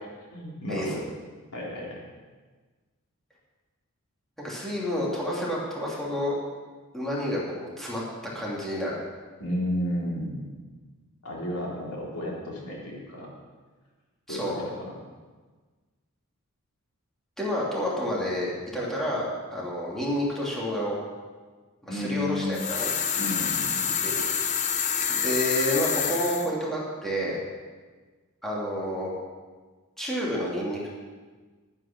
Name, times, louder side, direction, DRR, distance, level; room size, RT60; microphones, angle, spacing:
voice 1, 0.3-1.0 1.5-1.9 9.4-10.6 11.2-13.3 14.3-14.9 21.9-22.7 23.2-24.0, left 1 dB, 85° left, -4 dB, 3.6 m, -32 dB
voice 2, 4.4-6.4 6.9-8.0 8.3-9.0 14.3-14.7 17.4-19.3 19.5-20.9 21.8-22.9 24.0-24.2 25.2-27.4 28.4-29.1 30.0-30.9, equal, ahead, -6 dB, 2.9 m, -29 dB
sound 1, 22.5-26.5, left 7 dB, 35° left, 0.8 m, -27 dB
11.5 x 9.8 x 6.2 m, 1.4 s
head